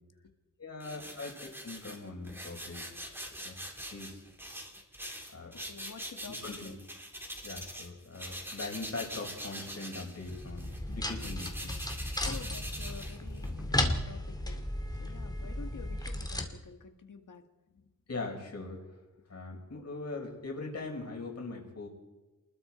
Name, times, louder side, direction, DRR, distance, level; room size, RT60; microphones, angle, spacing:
voice 1, 0.6-2.8 3.4-3.6 3.9-4.2 5.3-5.5 6.3-6.7 7.4-11.7 18.1-18.8 19.3-21.9, left 3 dB, 50° left, 1 dB, 5.6 m, -41 dB
sound 1, 0.8-7.9 8.1-13.6, equal, 5° right, 3.7 m, -43 dB
voice 2, 5.5-6.8 12.2-14.7 15.0-17.4 17.7-17.9, left 5 dB, 75° left, 7 dB, 2.0 m, -49 dB
sound 2, 10.2-16.5, left 1 dB, 10° left, 2.3 m, -35 dB
29.0 x 21.0 x 4.5 m, 1.2 s
wide cardioid pair, 130°, 32 cm